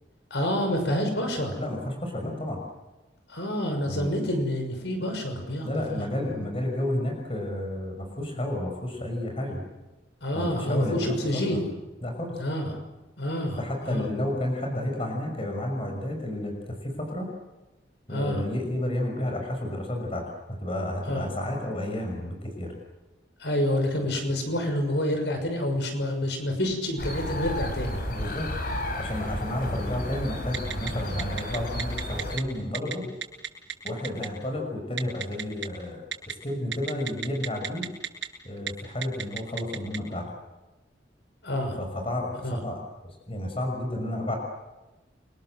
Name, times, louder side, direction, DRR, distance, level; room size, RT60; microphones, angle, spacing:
voice 1, 0.3-1.6 3.3-6.0 6.3-6.5 10.2-11.6 12.4-12.7 13.2-13.6 13.8-14.0 18.1-18.4 21.1-21.3 23.4-28.0 29.8-29.9 41.4-41.8 42.4-42.6, left 1 dB, 75° left, 5 dB, 6.3 m, -28 dB
voice 2, 1.6-2.6 3.9-4.2 5.6-9.6 10.3-11.6 12.0-12.4 13.6-17.3 18.1-20.2 20.6-22.7 28.1-28.5 29.0-33.1 33.8-37.9 38.4-40.2 41.8-42.8 43.3-44.4, left 1 dB, 30° left, 2 dB, 6.3 m, -31 dB
sound 1, 27.0-32.4, left 1 dB, 55° left, 4.7 m, -32 dB
Telephone, 30.5-30.9 31.2-32.4 32.7-32.9 33.2-34.3 35.0-35.7 36.1-36.3 36.7-38.3 38.6-38.7 39.0-40.0, right 9 dB, 75° right, 7.6 m, -31 dB
29.5 x 25.0 x 7.9 m, 1.1 s
head